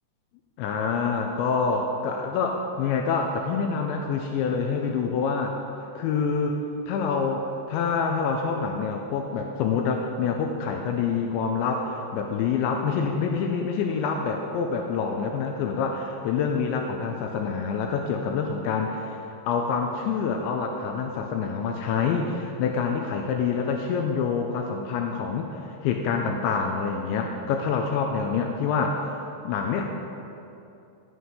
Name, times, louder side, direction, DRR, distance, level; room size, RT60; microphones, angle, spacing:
voice 1, 0.6-5.6 6.0-6.6 6.9-19.2 19.5-29.1 29.4-29.8, left 5 dB, 80° left, 3 dB, 3.0 m, -26 dB
14.5 x 8.0 x 6.6 m, 2.7 s
omnidirectional pair, 5.4 m